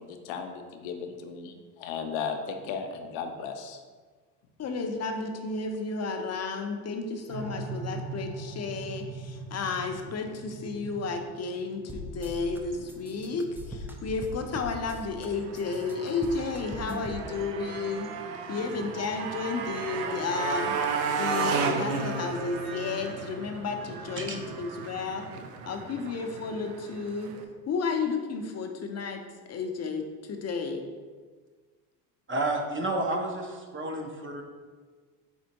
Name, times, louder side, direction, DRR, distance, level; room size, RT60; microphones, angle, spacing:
voice 1, 0.0-3.8, left 6 dB, 70° left, 5 dB, 0.7 m, -36 dB
voice 2, 4.6-18.1 18.5-20.8 21.2-25.3 25.7-27.3 27.7-30.8, left 4 dB, 35° left, 5 dB, 0.6 m, -32 dB
sound 1, 7.3-24.5, right 3 dB, 60° right, 1.1 m, -45 dB
sound 2, 11.9-12.6 12.9-15.3 15.6-17.2, equal, 5° right, 0.4 m, -40 dB
Motorcycle, 15.3-27.4, right 5 dB, 85° right, 0.6 m, -34 dB
voice 3, 32.3-34.4, right 2 dB, 25° right, 2 dB, 0.8 m, -30 dB
4.4 x 4.2 x 2.9 m, 1.5 s
hypercardioid pair, 75°, 46 cm